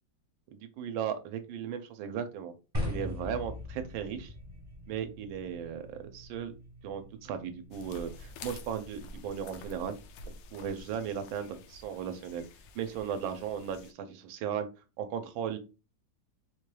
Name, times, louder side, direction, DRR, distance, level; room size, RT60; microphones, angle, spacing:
voice 1, 0.5-2.5 2.8-4.3 4.9-6.5 6.8-10.0 10.5-12.4 12.7-14.7 15.0-15.6, right 8 dB, 85° right, 8 dB, 1.4 m, -36 dB
sound 1, 2.7-8.9, left 1 dB, 30° right, 0.4 m, -41 dB
sound 2, 7.7-13.9, left 3 dB, 75° left, 1.1 m, -49 dB
4.4 x 2.2 x 3.1 m, 0.31 s
omnidirectional pair, 2.1 m